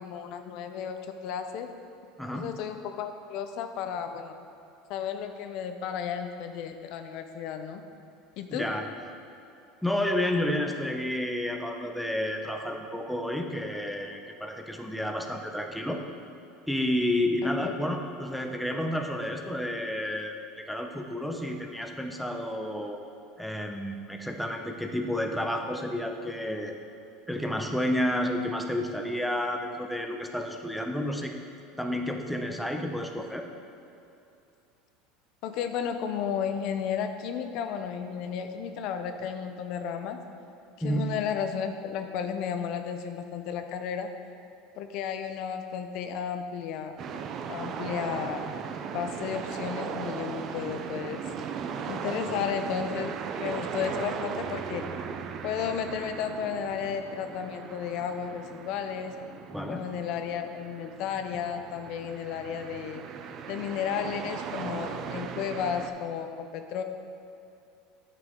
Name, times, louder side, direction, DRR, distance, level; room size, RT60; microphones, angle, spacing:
voice 1, 0.0-1.7 2.3-4.4 4.9-7.8 8.4-8.7 17.6-17.7 35.4-40.2 40.8-44.1 44.8-47.0 47.5-48.4 48.9-51.2 51.9-53.1 53.4-54.8 55.4-59.1 59.7-63.0 63.5-66.8, left 7 dB, 60° left, 7 dB, 0.5 m, -33 dB
voice 2, 2.2-2.5 8.5-8.9 9.8-16.0 16.7-23.0 23.4-26.7 27.3-31.3 31.8-33.5 40.8-41.1 52.3-52.4 59.5-59.8, left 1 dB, ahead, 3 dB, 0.6 m, -30 dB
sound 1, 47.0-65.9, right 6 dB, 45° right, 0.5 m, -37 dB
8.9 x 5.9 x 3.7 m, 2.8 s
supercardioid pair, 120°, 0 cm